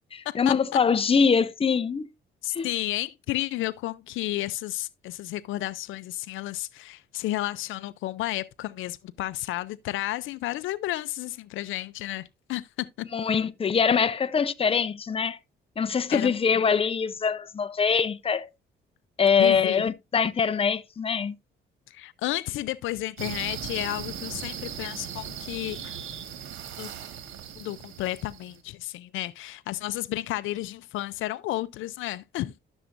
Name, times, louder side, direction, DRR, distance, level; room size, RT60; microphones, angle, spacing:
voice 1, 0.1-2.1 2.5-2.7 13.1-15.4 15.8-18.5 19.2-21.4, left 6 dB, 30° left, 0.6 m, -23 dB
voice 2, 2.4-13.1 16.1-16.3 19.4-19.9 21.9-26.0 26.8-26.9 27.6-32.5, left 16 dB, 80° left, 0.5 m, -32 dB
sound 1, 23.2-28.6, right 9 dB, 80° right, 1.7 m, -38 dB
11.5 x 7.0 x 2.5 m
cardioid pair, 90°, 20 cm